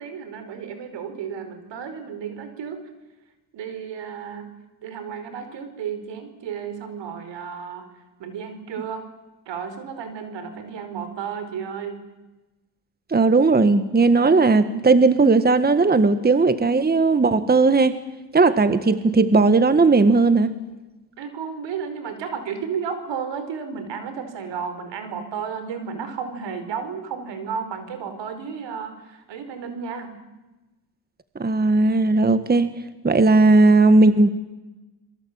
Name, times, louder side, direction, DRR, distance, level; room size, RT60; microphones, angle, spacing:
voice 1, 0.0-2.9 3.5-4.5 4.8-7.9 8.2-9.1 9.5-12.0 21.2-30.1, right 6 dB, 75° right, 9 dB, 5.1 m, -33 dB
voice 2, 13.1-18.0 18.3-20.5 31.3-32.7 33.0-34.3, right 3 dB, 20° right, 12 dB, 1.6 m, -17 dB
28.5 x 22.5 x 8.9 m, 1.1 s
cardioid pair, 90°, 43 cm